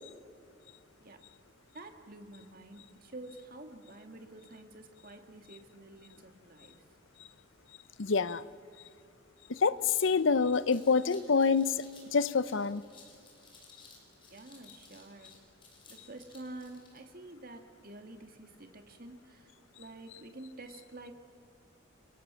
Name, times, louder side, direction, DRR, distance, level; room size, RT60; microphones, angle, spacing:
voice 1, 1.7-6.8 14.3-15.4 15.9-21.1, right 2 dB, 45° right, 6 dB, 2.2 m, -49 dB
voice 2, 8.0-8.4 9.5-11.8 12.1-12.8, left 5 dB, 70° left, 16 dB, 0.7 m, -26 dB
sound 1, 9.8-17.0, left 4 dB, 25° left, 5.3 m, -58 dB
29.5 x 22.5 x 7.0 m, 2.5 s
head